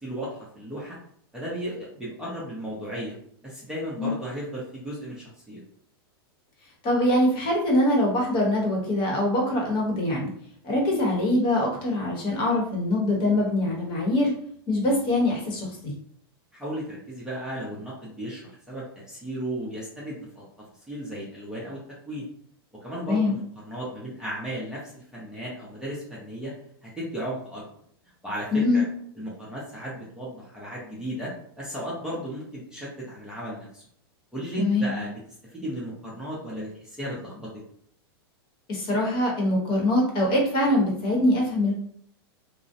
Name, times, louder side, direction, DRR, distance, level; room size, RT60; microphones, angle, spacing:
voice 1, 0.0-1.0 1.3-3.1 3.4-5.6 16.5-20.4 20.9-22.3 22.8-26.5 26.8-27.8 28.2-28.8 29.2-31.3 31.6-33.8 34.3-35.2 35.5-37.5, right 1 dB, 5° right, -7 dB, 0.7 m, -35 dB
voice 2, 6.8-10.3 10.6-14.3 14.7-15.9 23.1-23.3 28.5-28.8 34.6-34.9 38.7-41.7, left 1 dB, 40° left, -1 dB, 0.9 m, -23 dB
2.4 x 2.0 x 2.6 m, 0.64 s
hypercardioid pair, 125°, 13 cm